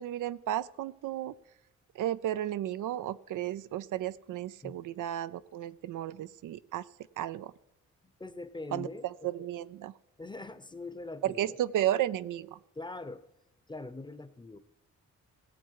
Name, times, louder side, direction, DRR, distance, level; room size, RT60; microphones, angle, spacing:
voice 1, 0.0-1.3 2.0-6.8 7.2-7.5 8.7-8.9 9.2-9.9 11.2-12.6, right 12 dB, 80° right, 15 dB, 0.5 m, -33 dB
voice 2, 8.0-9.5 10.2-11.6 12.7-13.2 13.7-14.6, left 2 dB, 15° left, 12 dB, 0.8 m, -43 dB
17.5 x 8.0 x 4.7 m, 0.86 s
cardioid pair, 95°, 31 cm